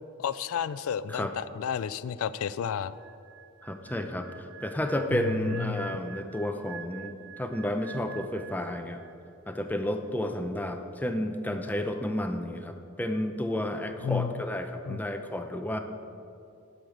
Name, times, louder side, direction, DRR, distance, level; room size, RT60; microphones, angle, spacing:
voice 1, 0.2-2.9 5.1-5.9 14.0-14.4 14.8-15.0, left 7 dB, 75° left, 16 dB, 0.3 m, -31 dB
sound 1, 2.9-9.3 9.6-9.9, right 9 dB, 75° right, 0.7 m, -47 dB
voice 2, 3.6-9.0 9.5-15.8, left 1 dB, 10° left, 6 dB, 0.6 m, -31 dB
11.0 x 6.6 x 6.5 m, 2.5 s
head